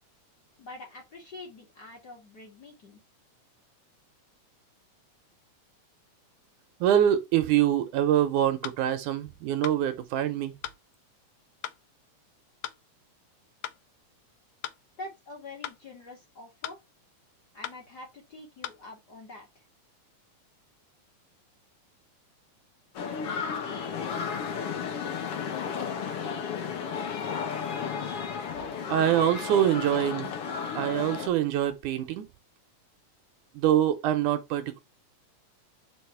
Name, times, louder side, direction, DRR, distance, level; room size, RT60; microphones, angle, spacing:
voice 1, 0.6-3.0 15.0-16.8 17.5-19.6, left 2 dB, 35° left, 2.2 m, -45 dB
voice 2, 6.8-10.5 28.9-30.3 30.8-32.3 33.5-34.8, right 11 dB, 75° right, 2.2 m, -25 dB
sound 1, 8.6-8.8 9.6-9.8 10.6-10.8 11.6-11.8 12.6-12.8 13.6-13.8 14.6-14.8 15.6-15.8 16.6-16.8 17.6-17.8 18.6-18.8, left 13 dB, 80° left, 2.1 m, -37 dB
sound 2, 22.9-31.3, left 6 dB, 55° left, 1.8 m, -33 dB
4.8 x 4.8 x 4.6 m
omnidirectional pair, 3.8 m